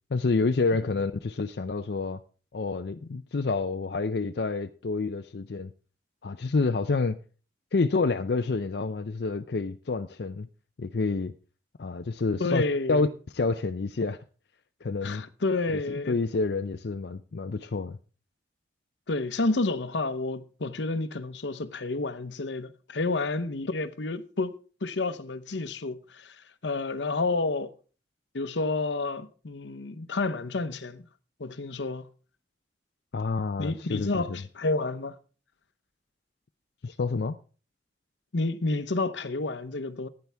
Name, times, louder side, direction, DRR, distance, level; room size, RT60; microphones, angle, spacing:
voice 1, 0.1-2.2 2.5-5.7 6.2-7.2 7.7-10.5 10.8-11.3 11.8-12.6 12.9-13.1 13.3-14.2 14.8-15.2 16.1-18.0 33.1-34.2 36.8-37.4, left 3 dB, 65° left, 0.5 m, -28 dB
voice 2, 12.4-13.1 15.0-16.2 19.1-27.7 28.3-31.0 31.4-32.1 33.6-35.2 38.3-40.1, left 3 dB, 85° left, 0.8 m, -30 dB
14.5 x 9.6 x 3.4 m
head